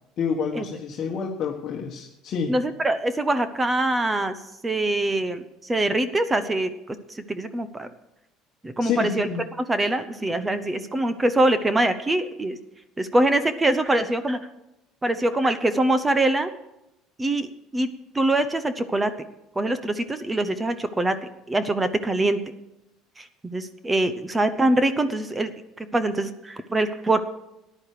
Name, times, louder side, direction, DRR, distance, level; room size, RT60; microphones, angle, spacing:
voice 1, 0.2-2.6 8.8-9.4, left 6 dB, 45° left, 0 dB, 1.4 m, -28 dB
voice 2, 2.5-4.4 4.6-7.9 8.6-9.3 9.7-12.6 13.0-14.4 15.0-16.5 17.2-17.5 17.7-17.9 18.1-19.1 19.6-21.2 21.5-22.4 23.2-25.5 25.8-27.2, right 1 dB, 15° right, 11 dB, 0.8 m, -23 dB
14.0 x 10.5 x 4.9 m, 0.89 s
cardioid pair, 135°, 0 cm